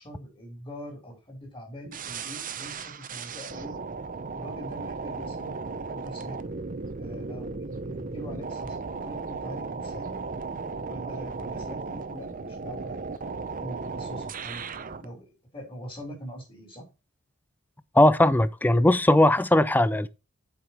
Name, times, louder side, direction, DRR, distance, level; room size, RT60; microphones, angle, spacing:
voice 1, 0.0-3.8 4.3-5.6 5.9-6.5 7.0-10.2 10.8-14.6 15.0-16.8, equal, 25° left, 4.9 m, -43 dB
sound 1, 1.9-15.1, right 4 dB, 40° right, 0.7 m, -36 dB
voice 2, 18.0-20.1, left 1 dB, 10° left, 0.4 m, -19 dB
8.3 x 5.8 x 4.5 m
head